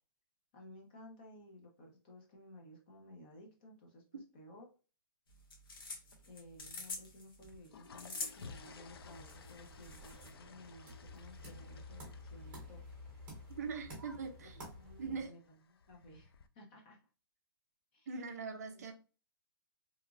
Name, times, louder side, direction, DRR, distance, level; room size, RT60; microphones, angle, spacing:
voice 1, 0.5-4.0 4.3-4.7 6.2-12.8 13.9-14.0 14.4-15.6 15.9-17.0 17.9-18.9, left 1 dB, 25° left, 0.6 m, -56 dB
sound 1, 5.3-10.3, left 3 dB, 70° left, 0.9 m, -47 dB
sound 2, 7.4-16.5, left 5 dB, 90° left, 0.4 m, -57 dB
sound 3, 8.7-15.3, left 1 dB, 10° right, 1.0 m, -52 dB
voice 2, 13.6-14.6 15.0-15.3 18.1-18.9, right 5 dB, 45° right, 0.5 m, -41 dB
2.9 x 2.4 x 2.3 m
hypercardioid pair, 175°, 12 cm